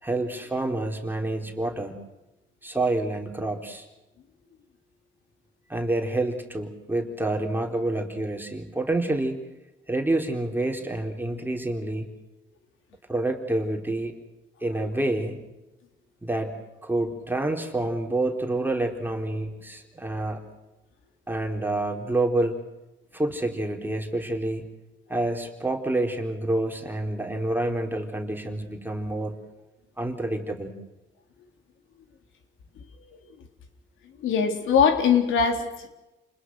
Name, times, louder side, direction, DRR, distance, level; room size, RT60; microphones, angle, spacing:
voice 1, 0.0-2.0 2.6-3.9 5.7-9.4 9.9-12.1 13.1-14.1 14.6-15.4 16.2-16.6 16.8-20.4 21.3-22.5 23.1-24.6 25.1-29.4 30.0-30.7, right 2 dB, 10° right, 2 dB, 4.2 m, -28 dB
voice 2, 34.2-35.9, left 6 dB, 80° left, 5 dB, 3.8 m, -22 dB
30.0 x 21.0 x 6.5 m, 0.99 s
cardioid pair, 90°, 20 cm